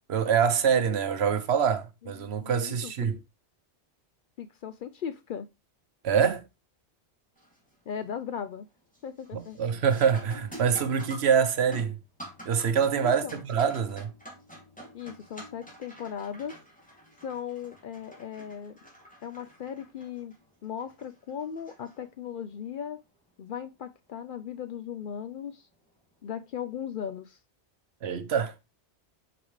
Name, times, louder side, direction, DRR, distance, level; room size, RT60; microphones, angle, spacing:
voice 1, 0.1-3.2 6.0-6.4 9.3-12.0 12.5-14.1 28.0-28.5, right 7 dB, 70° right, 1.0 m, -25 dB
voice 2, 2.0-3.1 4.4-5.5 7.9-8.7 9.0-9.6 13.0-13.4 14.9-16.6 17.2-18.8 19.2-20.3 20.6-23.0 23.4-25.7 26.2-27.4, left 8 dB, 60° left, 0.6 m, -37 dB
sound 1, 7.4-7.7 8.2-8.6 8.9-22.4 25.0-25.1 25.9-26.1, equal, 5° left, 2.4 m, -48 dB
7.1 x 4.9 x 3.1 m
omnidirectional pair, 1.1 m